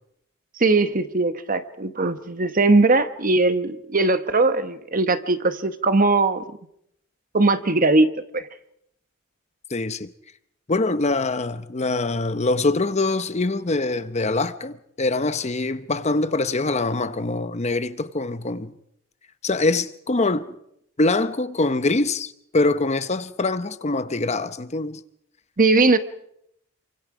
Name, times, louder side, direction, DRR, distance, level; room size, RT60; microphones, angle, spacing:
voice 1, 0.6-6.4 7.3-8.5 25.6-26.0, right 3 dB, 40° right, 1.2 m, -20 dB
voice 2, 9.7-10.1 10.7-18.7 19.4-20.5 21.0-25.0, left 2 dB, 35° left, 0.8 m, -24 dB
27.5 x 25.0 x 5.0 m
head